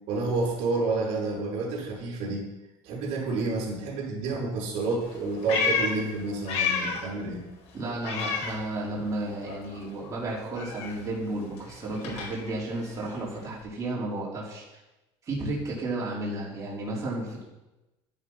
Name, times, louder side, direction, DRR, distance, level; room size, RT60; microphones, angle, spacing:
voice 1, 0.1-2.5 2.8-7.4, right 3 dB, 75° right, -1 dB, 5.5 m, -29 dB
Meow, 5.0-7.2 7.5-9.2 9.4-13.6, left 5 dB, 65° left, 4.8 m, -32 dB
voice 2, 7.7-14.6 15.2-17.4, right 2 dB, 30° right, -5 dB, 3.7 m, -33 dB
12.0 x 11.0 x 5.6 m, 1.0 s
cardioid pair, 135°, 12 cm